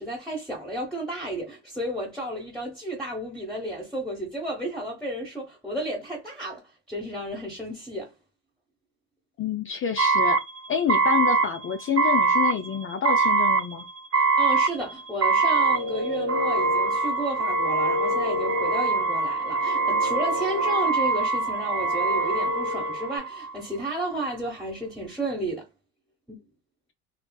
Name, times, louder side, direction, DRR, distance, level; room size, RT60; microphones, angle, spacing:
voice 1, 0.0-6.6 6.9-8.1 14.1-25.7 26.3-26.4, right 1 dB, ahead, 0.9 m, -32 dB
voice 2, 9.4-10.4 10.7-13.8, left 8 dB, 35° left, 0.4 m, -27 dB
sound 1, 10.0-23.6, right 4 dB, 40° right, 0.5 m, -24 dB
sound 2, 15.3-23.2, left 3 dB, 70° right, 1.3 m, -32 dB
2.5 x 2.5 x 2.2 m
cardioid pair, 95°, 38 cm